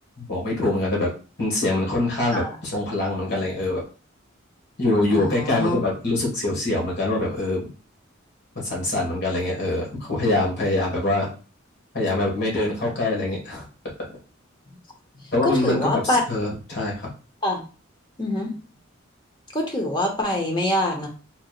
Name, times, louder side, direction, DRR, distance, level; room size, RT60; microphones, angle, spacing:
voice 1, 0.2-1.1 1.4-3.8 4.8-7.7 8.6-11.3 11.9-13.7 15.3-17.1, left 2 dB, 60° left, -2 dB, 1.9 m, -24 dB
voice 2, 5.1-5.7 15.4-16.2 17.4-17.6 18.2-18.5 19.5-21.1, left 1 dB, 25° left, 2 dB, 1.0 m, -24 dB
4.1 x 3.5 x 2.5 m, 0.35 s
head